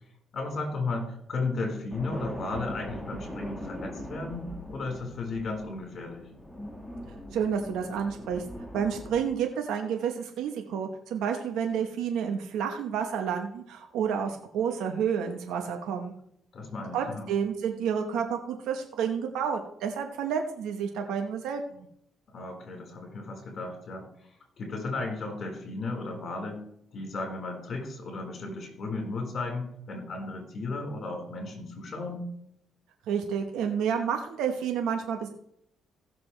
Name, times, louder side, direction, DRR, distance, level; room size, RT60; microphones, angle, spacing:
voice 1, 0.3-6.3 16.5-17.3 22.3-26.6 26.9-32.3, left 3 dB, 50° left, 1 dB, 4.4 m, -35 dB
sound 1, 1.9-9.2, equal, 5° left, 1.6 m, -41 dB
voice 2, 7.3-8.4 8.7-16.1 16.9-21.9 33.1-35.3, right 7 dB, 85° right, 4 dB, 1.1 m, -30 dB
16.0 x 6.8 x 3.3 m, 0.71 s
cardioid pair, 90°, 0 cm